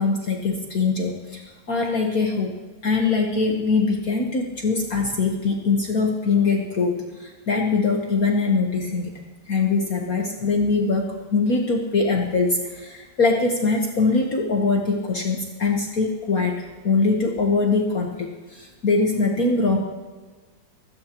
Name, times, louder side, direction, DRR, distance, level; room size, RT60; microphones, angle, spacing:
voice 1, 0.0-2.5 2.8-9.2 9.5-16.5 16.8-19.8, left 4 dB, 50° left, 1 dB, 1.5 m, -22 dB
24.0 x 14.5 x 3.0 m, 1.4 s
omnidirectional pair, 2.2 m